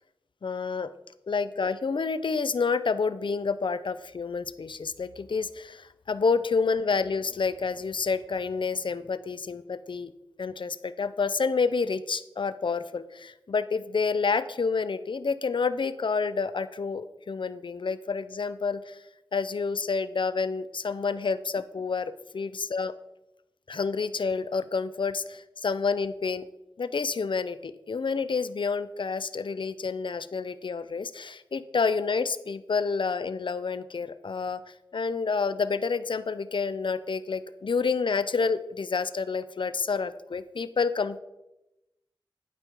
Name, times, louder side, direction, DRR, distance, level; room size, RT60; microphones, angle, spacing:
voice 1, 0.4-0.9 1.3-10.1 10.4-19.0 19.3-22.9 23.7-26.4 26.8-41.2, left 5 dB, 70° left, 14 dB, 0.5 m, -29 dB
11.5 x 5.2 x 4.5 m, 0.93 s
wide cardioid pair, 50°, 9 cm